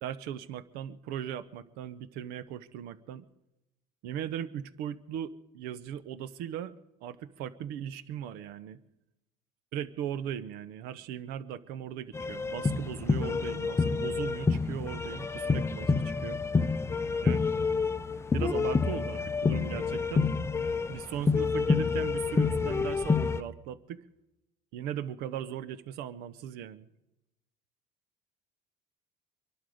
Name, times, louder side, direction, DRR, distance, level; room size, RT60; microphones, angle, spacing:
voice 1, 0.0-3.3 4.0-8.8 9.7-16.4 17.2-17.5 18.3-20.3 20.9-24.0 24.7-26.9, right 10 dB, 80° right, 16 dB, 0.8 m, -38 dB
sound 1, 12.1-23.4, left 4 dB, 15° left, 0.5 m, -28 dB
23.0 x 11.5 x 5.0 m, 0.92 s
cardioid pair, 115°, 16 cm